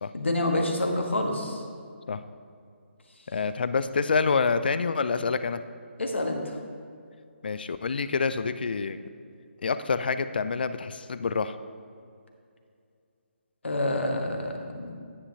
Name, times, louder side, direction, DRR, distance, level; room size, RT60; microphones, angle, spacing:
voice 1, 0.1-1.6 6.0-6.6 13.6-14.9, left 1 dB, 70° left, 3 dB, 1.3 m, -28 dB
voice 2, 3.3-5.6 7.4-9.0 9.6-11.6, left 5 dB, 50° left, 12 dB, 0.4 m, -27 dB
9.8 x 9.6 x 2.8 m, 2.3 s
figure-of-eight pair, 145°, 7 cm